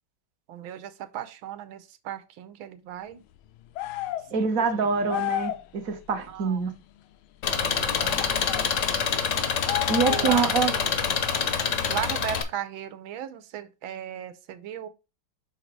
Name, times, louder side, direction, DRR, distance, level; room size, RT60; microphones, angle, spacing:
voice 1, 0.5-3.2 4.3-4.9 6.3-6.6 7.6-8.4 10.1-10.9 11.9-14.9, right 11 dB, 80° right, 1.5 m, -36 dB
sound 1, 3.8-4.3 5.1-5.6 8.2-8.7 9.7-10.4, left 16 dB, 90° left, 1.4 m, -31 dB
voice 2, 4.3-6.7 9.9-10.7, right 5 dB, 50° right, 1.2 m, -25 dB
Engine, 7.4-12.4, left 6 dB, 55° left, 0.9 m, -26 dB
5.8 x 4.1 x 4.5 m
omnidirectional pair, 2.2 m